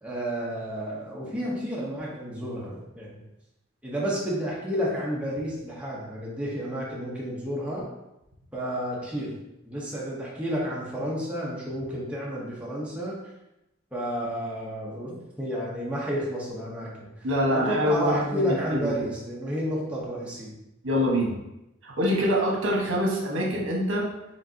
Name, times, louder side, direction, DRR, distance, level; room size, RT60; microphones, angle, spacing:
voice 1, 0.0-3.2 3.8-7.9 8.5-9.4 9.7-13.1 13.9-20.6, equal, 5° right, -5 dB, 0.8 m, -31 dB
voice 2, 17.2-18.9 20.8-21.3 21.8-24.1, equal, 80° right, -2 dB, 1.1 m, -25 dB
5.0 x 3.3 x 2.7 m, 0.90 s
head